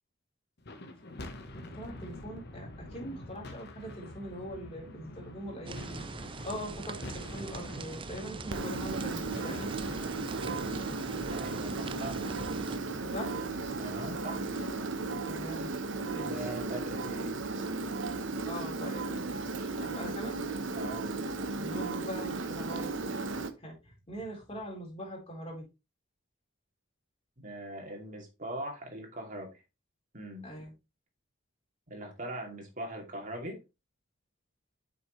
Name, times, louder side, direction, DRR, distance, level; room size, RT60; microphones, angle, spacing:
sound 1, 0.6-17.0, left 1 dB, 60° left, 1.2 m, -47 dB
voice 1, 1.5-6.0 6.4-9.8 13.1-13.4 15.2-15.7 16.1-16.5 18.5-20.4 21.6-22.9 23.3-25.7 30.4-30.7, equal, 30° left, 3.7 m, -42 dB
sound 2, 5.7-12.8, right 4 dB, 25° right, 0.4 m, -42 dB
Engine, 8.5-23.5, right 3 dB, 70° right, 1.0 m, -35 dB
voice 2, 11.3-12.3 13.8-14.4 16.1-17.4 20.7-21.0 27.4-29.6 30.1-30.5 31.9-33.6, right 1 dB, 45° right, 2.6 m, -41 dB
7.9 x 6.0 x 3.2 m
head